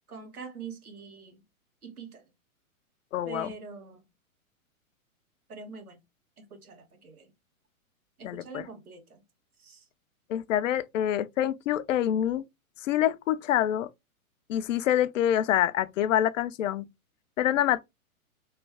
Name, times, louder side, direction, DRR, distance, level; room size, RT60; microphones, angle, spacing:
voice 1, 0.1-1.4 1.8-2.2 3.2-4.0 5.5-6.0 6.4-7.3 8.2-9.2 9.6-9.8, right 5 dB, 90° right, 1.3 m, -44 dB
voice 2, 3.1-3.5 8.2-8.7 10.3-12.5 12.8-13.9 14.5-16.8 17.4-17.8, left 11 dB, 65° left, 0.5 m, -26 dB
3.2 x 2.2 x 3.4 m
hypercardioid pair, 120°, 43 cm